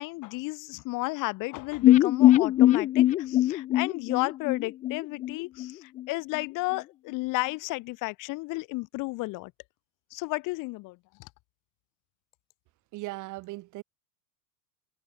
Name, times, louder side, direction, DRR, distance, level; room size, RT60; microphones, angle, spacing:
voice 1, 0.0-9.5 10.1-11.3, left 23 dB, 50° left, 5.7 m, -33 dB
sound 1, 1.8-5.7 6.0-6.1 6.4-6.5, left 14 dB, 20° left, 0.4 m, -22 dB
voice 2, 12.9-13.8, right 20 dB, 45° right, 4.3 m, -38 dB
supercardioid pair, 140°, 42 cm